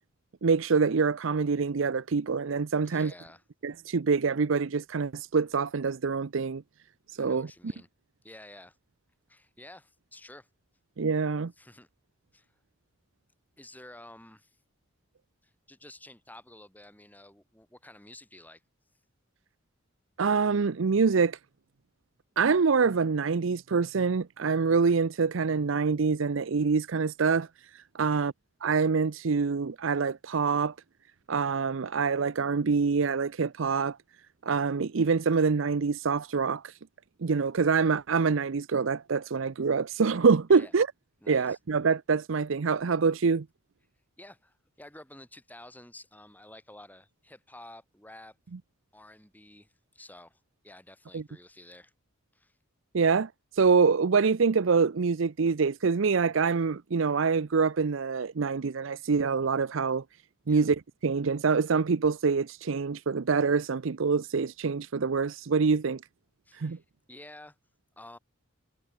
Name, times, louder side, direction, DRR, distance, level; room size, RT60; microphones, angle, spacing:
voice 1, 0.4-3.1 3.6-6.6 7.2-7.5 11.0-11.5 20.2-21.4 22.4-27.5 27.7-28.3 28.6-30.7 31.3-34.0 34.4-36.7 37.2-40.9 41.3-43.5 51.1-51.2 52.9-53.3 53.6-60.0 60.5-66.0 66.6-66.8, right 5 dB, 70° right, 0.6 m, -25 dB
voice 2, 2.8-3.4 7.2-7.9 8.2-8.8 9.3-10.5 11.6-11.9 12.3-12.5 13.6-14.6 15.4-18.6 28.0-28.3 40.5-40.8 41.2-41.6 44.2-48.4 48.9-51.9 52.3-52.6 60.5-60.7 66.5-67.6 68.0-68.2, left 1 dB, 10° left, 7.2 m, -51 dB
head